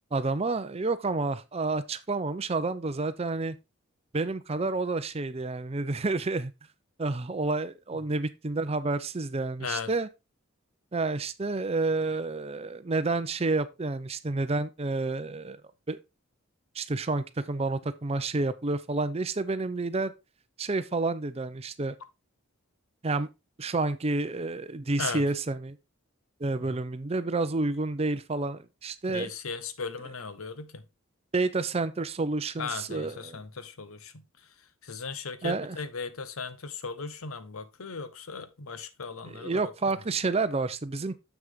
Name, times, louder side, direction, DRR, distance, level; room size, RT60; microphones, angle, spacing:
voice 1, 0.1-3.6 4.1-6.5 7.0-10.1 10.9-15.6 15.9-16.0 16.7-20.1 20.6-21.9 23.0-23.3 23.6-25.8 26.4-29.3 31.3-33.4 35.4-35.8 39.3-41.2, right 3 dB, 30° right, 0.5 m, -29 dB
voice 2, 9.6-9.9 25.0-25.2 26.7-26.8 29.1-30.8 32.6-34.2 34.8-39.7, left 5 dB, 85° left, 0.9 m, -37 dB
7.2 x 6.2 x 3.6 m
head